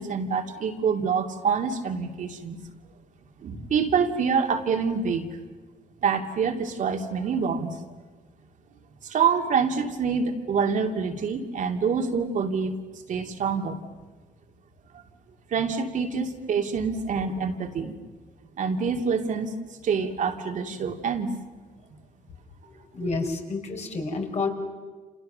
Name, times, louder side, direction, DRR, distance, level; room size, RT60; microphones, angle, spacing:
voice 1, 0.0-2.6 3.4-5.3 6.0-7.8 9.0-12.8 13.1-13.8 14.9-15.0 15.5-17.9 18.6-19.5 19.8-21.3 23.0-23.1, right 6 dB, 60° right, 5 dB, 2.6 m, -26 dB
voice 2, 22.7-24.5, left 3 dB, 50° left, 3 dB, 4.9 m, -30 dB
29.5 x 27.5 x 6.7 m, 1.4 s
cardioid pair, 85°, 15 cm